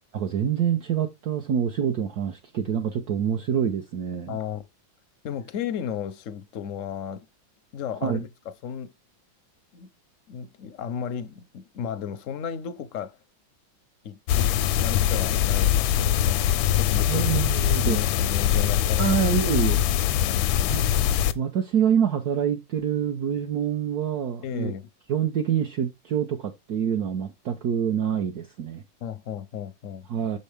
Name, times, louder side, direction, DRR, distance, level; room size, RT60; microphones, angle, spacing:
voice 1, 0.1-4.4 8.0-8.3 17.1-18.0 19.0-19.8 20.7-20.9 21.3-24.7 25.1-28.8 30.1-30.4, right 8 dB, 60° right, 1.1 m, -26 dB
voice 2, 4.3-4.6 5.2-7.3 7.7-8.3 8.6-8.9 9.7-9.9 10.3-13.2 14.0-16.5 16.7-17.4 17.8-19.2 20.2-20.7 24.4-24.9 29.0-30.1, left 8 dB, 60° left, 0.8 m, -34 dB
sound 1, 14.3-21.3, left 11 dB, 85° left, 1.3 m, -22 dB
6.9 x 5.5 x 3.4 m
omnidirectional pair, 2.1 m